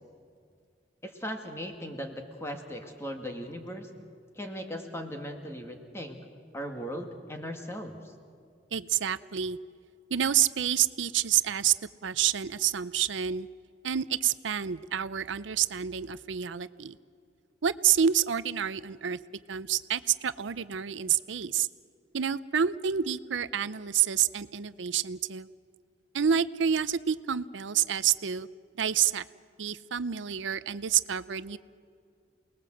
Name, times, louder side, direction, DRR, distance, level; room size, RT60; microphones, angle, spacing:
voice 1, 1.0-3.9 4.4-6.2 6.5-8.0, equal, 15° left, 4 dB, 2.0 m, -38 dB
voice 2, 8.7-9.6 10.1-11.7 12.0-13.5 13.8-17.0 17.6-21.7 22.1-25.5 26.1-28.5 28.8-29.2 29.6-31.6, right 9 dB, 85° right, 15 dB, 0.6 m, -28 dB
28.5 x 19.5 x 7.8 m, 2.2 s
head